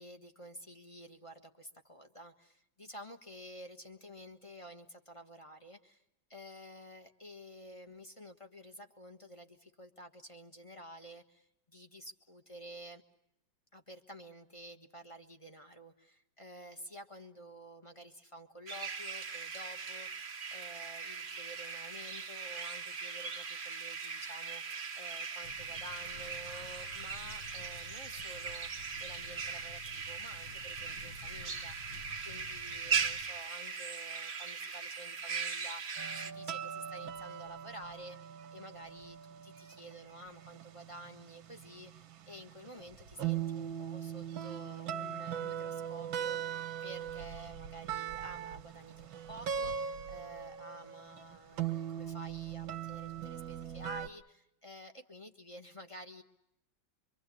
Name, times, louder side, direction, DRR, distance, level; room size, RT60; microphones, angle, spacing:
voice 1, 0.0-6.0 6.3-13.0 13.7-28.7 29.0-31.9 32.2-56.2, equal, 20° left, 6 dB, 1.3 m, -51 dB
sound 1, 18.7-36.3, right 5 dB, 35° right, 0.9 m, -39 dB
sound 2, 25.4-33.3, left 2 dB, 75° left, 5.6 m, -53 dB
sound 3, 36.0-54.1, right 9 dB, 85° right, 2.0 m, -40 dB
24.5 x 24.5 x 8.5 m, 0.79 s
omnidirectional pair, 2.1 m